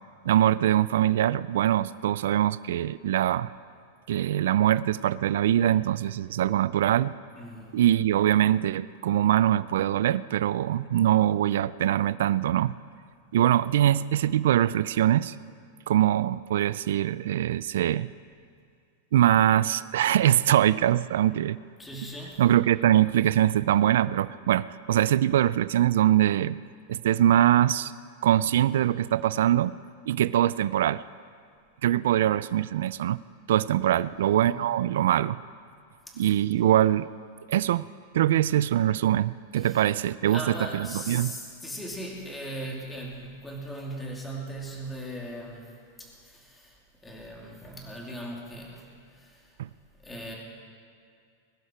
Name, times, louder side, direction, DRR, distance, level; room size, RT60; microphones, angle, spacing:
voice 1, 0.2-3.5 4.1-7.1 7.7-12.7 13.3-15.4 15.9-18.1 19.1-21.6 22.4-26.6 26.9-27.9 28.2-29.7 30.1-31.0 31.8-33.2 33.5-35.4 36.2-37.1 37.5-37.9 38.1-41.3 49.6-49.7, right 12 dB, 80° right, 17 dB, 0.4 m, -23 dB
voice 2, 7.4-7.8 21.8-22.4 34.0-34.8 36.1-36.3 39.5-39.8 40.3-49.5 50.0-50.4, equal, 10° left, -2 dB, 2.7 m, -39 dB
21.5 x 11.5 x 4.5 m, 2.3 s
supercardioid pair, 150°, 0 cm